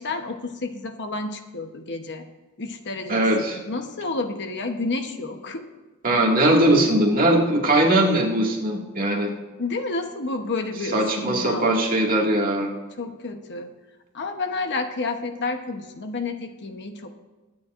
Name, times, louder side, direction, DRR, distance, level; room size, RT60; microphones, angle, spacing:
voice 1, 0.0-2.2 2.6-5.7 9.6-11.7 13.0-13.7 14.1-17.1, left 3 dB, 50° left, 6 dB, 1.0 m, -30 dB
voice 2, 3.1-3.6 6.0-9.3 10.9-12.7, right 1 dB, 40° right, -1 dB, 2.1 m, -20 dB
22.5 x 9.5 x 2.6 m, 1.2 s
head